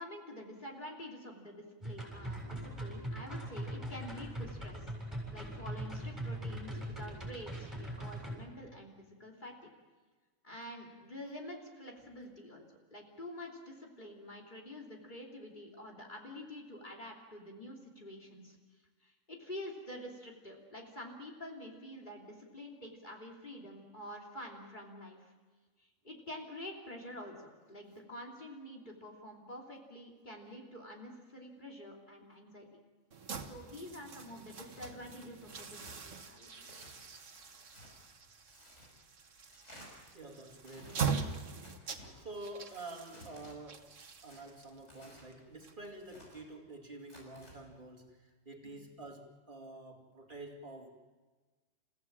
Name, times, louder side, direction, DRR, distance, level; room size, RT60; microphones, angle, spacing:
voice 1, 0.0-9.7 10.4-12.6 12.9-18.6 19.0-25.3 25.8-32.7 33.4-36.9 48.6-48.9, left 1 dB, 40° left, 1 dB, 3.2 m, -48 dB
sound 1, 1.8-8.3, right 1 dB, 15° right, 7.4 m, -41 dB
sound 2, 33.1-46.2, right 6 dB, 85° right, 1.7 m, -42 dB
Tearing, 34.5-34.9 35.5-36.0 36.6-36.9 37.3-37.9 38.5-38.9 39.5-39.9 40.6-41.0 41.6-42.1 42.7-43.6 44.3-45.3 45.8-46.4 47.0-47.5, equal, 65° left, 6.2 m, -56 dB
voice 2, 40.1-50.9, right 2 dB, 40° right, 0 dB, 2.7 m, -49 dB
29.5 x 16.0 x 7.4 m, 1.4 s
omnidirectional pair, 1.3 m